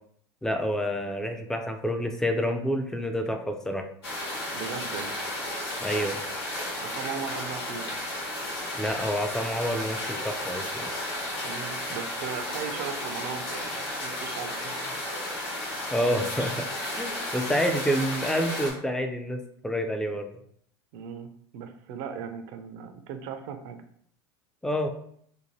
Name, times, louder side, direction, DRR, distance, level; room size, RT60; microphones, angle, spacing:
voice 1, 0.4-3.9 5.8-6.2 8.7-10.9 15.9-16.7 17.0-20.3 24.6-24.9, equal, 5° left, 5 dB, 0.4 m, -28 dB
sound 1, 4.0-18.7, left 1 dB, 85° left, 1.1 m, -33 dB
voice 2, 4.5-5.2 6.8-8.0 11.4-15.0 20.9-23.8, right 7 dB, 60° right, 7 dB, 0.5 m, -38 dB
2.7 x 2.2 x 3.0 m, 0.65 s
hypercardioid pair, 95°, 13 cm